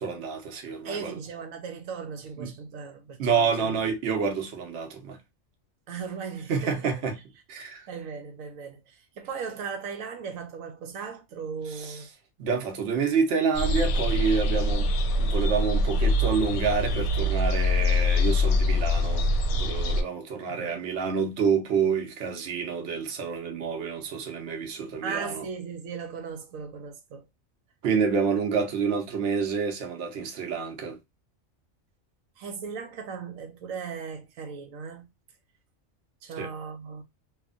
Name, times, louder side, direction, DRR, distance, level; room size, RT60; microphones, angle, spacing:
voice 1, 0.0-1.1 2.4-2.5 3.2-5.2 6.5-7.2 7.5-7.9 11.7-12.0 12.4-14.9 15.2-19.3 19.5-25.4 27.8-31.0 36.4-36.5, right 6 dB, 60° right, 1.0 m, -28 dB
voice 2, 0.8-3.8 5.9-6.9 7.9-12.1 20.5-20.8 25.0-27.2 32.4-35.1 36.2-37.0, right 6 dB, 85° right, 1.0 m, -37 dB
sound 1, 13.5-20.0, left 1 dB, 70° left, 0.8 m, -24 dB
2.8 x 2.4 x 2.3 m
omnidirectional pair, 1.4 m